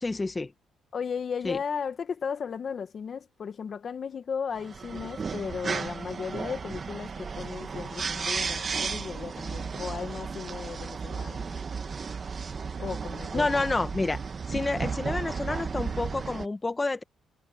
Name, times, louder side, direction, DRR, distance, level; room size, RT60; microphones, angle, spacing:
voice 1, 0.0-0.5 1.4-1.6 13.3-14.2 14.5-17.0, left 3 dB, 20° left, 1.7 m, -29 dB
voice 2, 0.9-11.6 12.8-13.6, left 6 dB, 50° left, 1.3 m, -35 dB
sound 1, 4.6-16.5, right 5 dB, 40° right, 1.5 m, -34 dB
cardioid pair, 90°, 0 cm